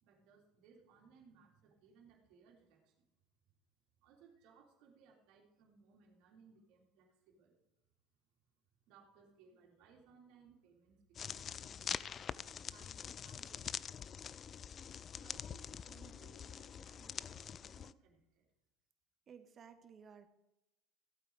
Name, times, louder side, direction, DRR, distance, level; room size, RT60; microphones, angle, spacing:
voice 1, 0.0-3.1 4.0-7.6 8.9-12.0 12.5-13.9 15.2-18.5, right 5 dB, 65° right, 0 dB, 3.3 m, -64 dB
sound 1, 11.1-17.9, left 8 dB, 40° left, 0.4 m, -45 dB
voice 2, 19.3-20.3, right 7 dB, 40° right, 9 dB, 1.5 m, -56 dB
15.0 x 8.5 x 4.9 m, 0.92 s
hypercardioid pair, 80°, 0 cm